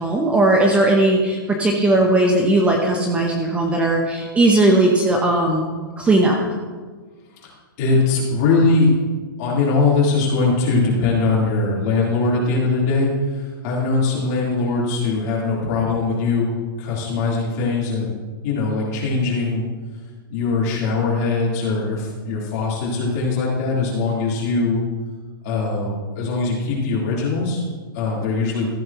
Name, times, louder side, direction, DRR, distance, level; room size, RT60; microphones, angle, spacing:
voice 1, 0.0-5.6 6.0-6.4, right 2 dB, 10° right, 1 dB, 0.9 m, -17 dB
voice 2, 7.8-8.9 9.4-16.5 16.8-18.1 18.4-19.6 20.3-24.8 25.4-27.6 27.9-28.7, left 3 dB, 40° left, -5 dB, 3.7 m, -21 dB
14.5 x 9.3 x 3.1 m, 1.5 s
hypercardioid pair, 155°, 12 cm